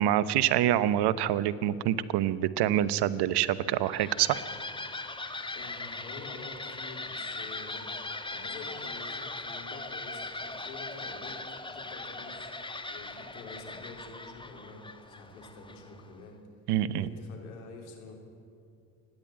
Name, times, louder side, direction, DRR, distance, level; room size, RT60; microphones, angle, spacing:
voice 1, 0.0-4.4 16.7-17.1, right 12 dB, 65° right, 16 dB, 1.0 m, -26 dB
sound 1, 3.5-16.1, left 2 dB, 10° left, 1.4 m, -40 dB
voice 2, 5.5-7.9 8.3-12.5 12.9-14.8 15.1-16.4 16.9-18.2, left 3 dB, 90° left, 2 dB, 3.5 m, -47 dB
27.5 x 10.5 x 9.1 m, 2.5 s
hypercardioid pair, 70°, 42 cm